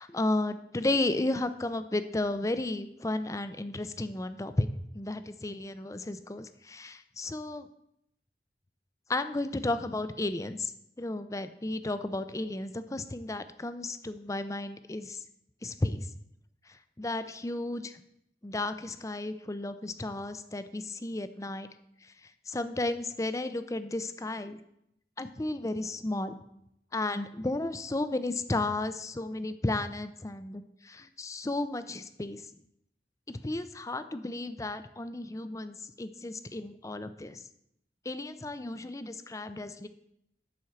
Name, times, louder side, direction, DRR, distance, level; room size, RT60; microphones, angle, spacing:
voice 1, 0.0-4.7 4.9-7.7 9.1-10.7 11.0-15.2 15.6-16.1 17.0-17.9 18.4-21.7 22.5-24.6 25.2-26.3 26.9-32.4 33.4-37.4 38.1-39.9, left 2 dB, 20° left, 11 dB, 0.5 m, -33 dB
11.5 x 4.4 x 7.1 m, 0.77 s
head